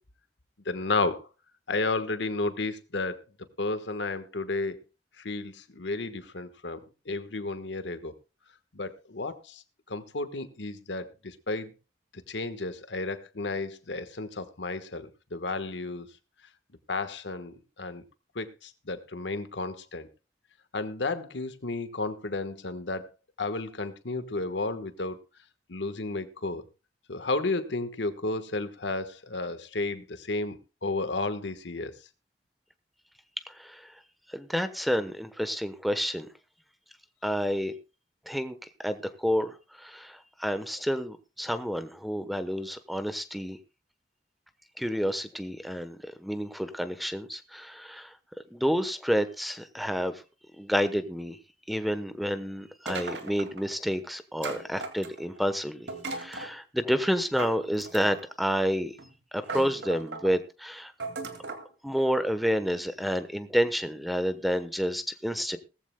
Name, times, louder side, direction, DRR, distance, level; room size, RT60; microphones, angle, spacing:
voice 1, 0.6-1.3 1.7-3.2 3.6-4.8 5.2-6.8 7.1-8.1 8.7-9.6 9.9-11.7 12.3-16.1 16.9-18.0 18.3-20.1 20.7-23.1 23.4-25.2 25.7-26.6 27.1-31.9, left 3 dB, 90° left, 1.3 m, -32 dB
voice 2, 33.5-33.9 34.3-36.3 37.2-37.7 38.3-38.6 38.8-43.6 44.8-48.1 48.5-50.2 50.6-51.4 51.7-58.9 59.3-60.9 61.8-65.6, equal, ahead, 1.0 m, -29 dB
sound 1, 52.9-53.7 54.4-55.4 55.9-56.5 57.4-58.3 59.0-59.1 59.4-60.3 61.0-61.7, right 3 dB, 80° right, 2.2 m, -37 dB
19.0 x 14.5 x 2.2 m
head